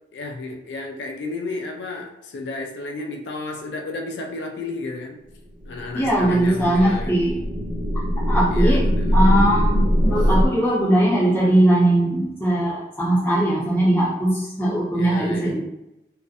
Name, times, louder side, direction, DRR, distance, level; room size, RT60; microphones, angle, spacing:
voice 1, 0.1-5.2 5.7-7.2 8.5-9.4 14.9-15.6, left 3 dB, 80° left, 2 dB, 0.3 m, -32 dB
sound 1, 5.6-10.5, equal, 85° right, 0.8 m, -21 dB
voice 2, 5.9-7.4 8.2-8.8 9.1-15.6, right 1 dB, 10° left, -6 dB, 0.6 m, -20 dB
2.6 x 2.1 x 2.4 m, 0.91 s
head